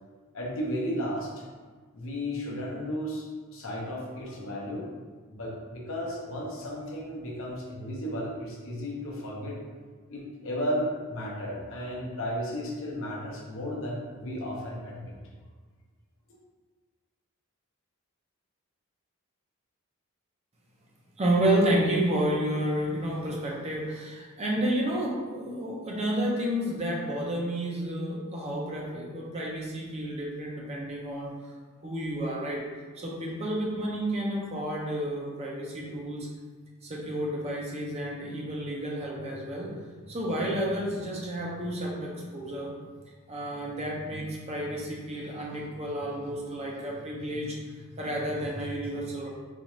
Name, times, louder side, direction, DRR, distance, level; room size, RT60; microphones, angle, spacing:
voice 1, 0.3-1.4 1.9-3.2 3.5-4.9 5.3-9.5 10.1-15.1, equal, 60° left, -3 dB, 0.7 m, -34 dB
voice 2, 21.2-31.3 31.8-32.6 33.0-36.3 36.8-39.7 40.1-42.7 43.3-47.6 48.0-49.3, right 1 dB, 30° right, -3 dB, 0.5 m, -30 dB
4.1 x 2.4 x 3.0 m, 1.4 s
head